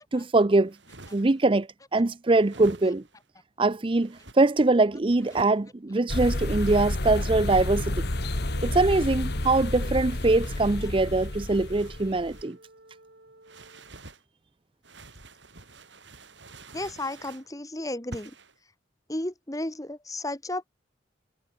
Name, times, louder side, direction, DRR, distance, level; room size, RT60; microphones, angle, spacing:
voice 1, 0.1-0.7 1.1-3.0 3.6-8.0 8.6-12.6, right 2 dB, 30° right, 0.6 m, -23 dB
sound 1, 0.6-1.5 2.3-3.2 4.0-4.4 5.2-5.6 6.3-7.8 8.8-12.6 13.4-14.2 14.8-17.5 18.1-18.6, right 2 dB, 75° right, 6.9 m, -49 dB
sound 2, 6.1-12.4, left 1 dB, 60° left, 1.7 m, -30 dB
Wind instrument woodwind instrument, 7.7-14.0, right 1 dB, 60° right, 6.1 m, -52 dB
voice 2, 16.7-18.3 19.1-20.8, left 1 dB, 20° left, 2.1 m, -33 dB
head